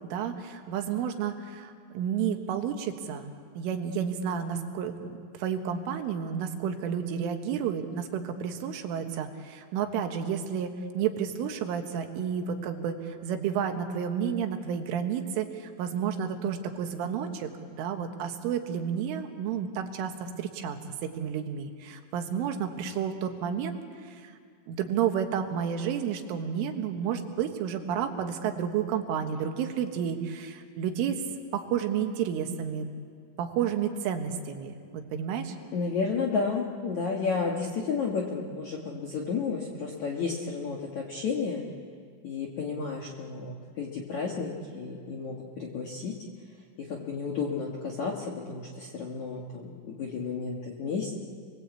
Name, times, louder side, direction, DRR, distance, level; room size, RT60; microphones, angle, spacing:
voice 1, 0.1-5.1 5.3-24.4 24.7-31.2 31.5-32.9 33.4-35.6, right 8 dB, 75° right, 5 dB, 3.9 m, -31 dB
voice 2, 35.7-41.6 42.2-46.1 46.8-51.1, left 5 dB, 60° left, -1 dB, 2.0 m, -32 dB
30.0 x 22.0 x 8.4 m, 2.1 s
omnidirectional pair, 5.9 m